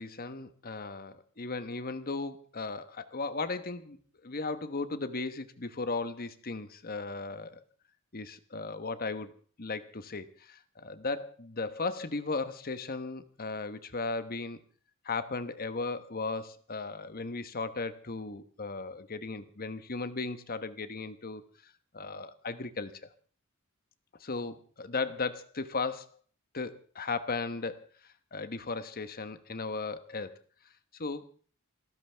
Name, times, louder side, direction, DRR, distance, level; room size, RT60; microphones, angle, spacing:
voice 1, 0.0-7.6 8.1-9.3 9.6-14.6 15.0-22.9 24.2-26.1 26.5-27.8 28.3-30.4 30.9-31.2, left 3 dB, 45° left, 11 dB, 1.1 m, -36 dB
28.0 x 13.5 x 3.5 m, 0.43 s
head